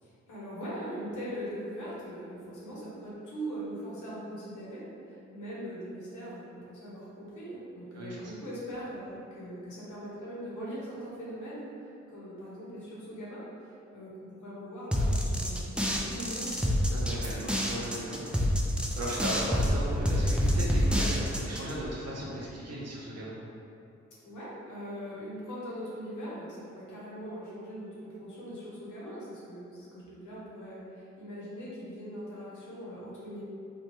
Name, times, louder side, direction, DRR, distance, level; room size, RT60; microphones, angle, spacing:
voice 1, 0.0-13.4 13.9-16.6 24.2-33.4, equal, 85° left, -7 dB, 0.9 m, -41 dB
voice 2, 7.9-8.3 16.9-18.4 19.0-23.4, right 1 dB, 60° right, -5 dB, 0.8 m, -36 dB
sound 1, 14.9-21.7, equal, 5° right, 0.4 m, -27 dB
2.9 x 2.2 x 3.1 m, 2.7 s
supercardioid pair, 50°, 29 cm